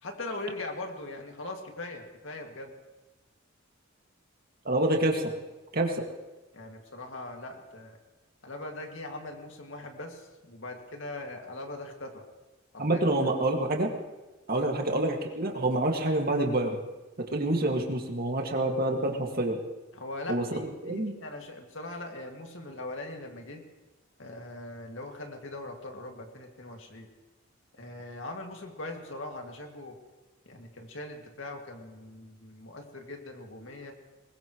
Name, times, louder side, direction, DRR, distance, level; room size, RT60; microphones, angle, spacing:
voice 1, 0.0-2.7 6.5-8.0 8.4-12.2 12.7-13.3 14.5-14.7 19.9-23.6 24.2-27.1 27.7-30.0 30.5-33.9, left 2 dB, 70° left, 3 dB, 2.2 m, -41 dB
voice 2, 4.7-5.2 5.7-6.1 12.8-13.9 14.5-16.8 17.2-19.6 20.3-20.4 20.8-21.1, right 1 dB, 50° right, 2 dB, 2.0 m, -27 dB
21.0 x 20.5 x 3.1 m, 1.1 s
head